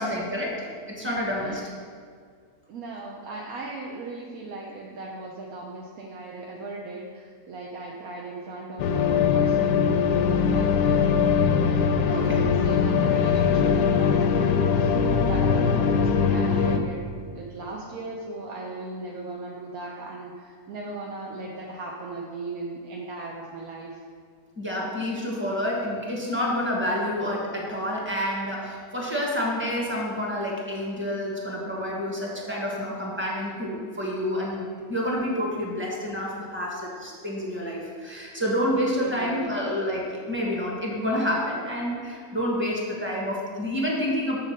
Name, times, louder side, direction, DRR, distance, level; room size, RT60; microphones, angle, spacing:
voice 1, 0.0-1.7 12.1-12.4 24.6-44.4, equal, 10° right, -3 dB, 1.3 m, -28 dB
voice 2, 1.0-1.6 2.7-14.9 15.2-23.9 38.8-39.7, right 2 dB, 70° right, -2 dB, 1.2 m, -37 dB
sound 1, 8.8-16.8, left 6 dB, 85° left, 1.1 m, -21 dB
7.6 x 4.1 x 6.4 m, 2.1 s
omnidirectional pair, 1.6 m